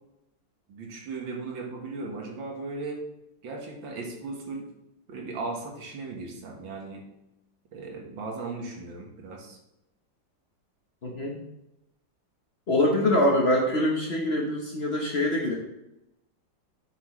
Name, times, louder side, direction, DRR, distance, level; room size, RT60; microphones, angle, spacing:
voice 1, 0.7-3.0 3.4-4.7 5.1-7.0 7.7-9.6, right 3 dB, 80° right, 0 dB, 2.1 m, -37 dB
voice 2, 11.0-11.4 12.7-15.6, left 1 dB, 40° left, -1 dB, 1.1 m, -24 dB
7.5 x 7.4 x 3.1 m, 0.89 s
omnidirectional pair, 2.1 m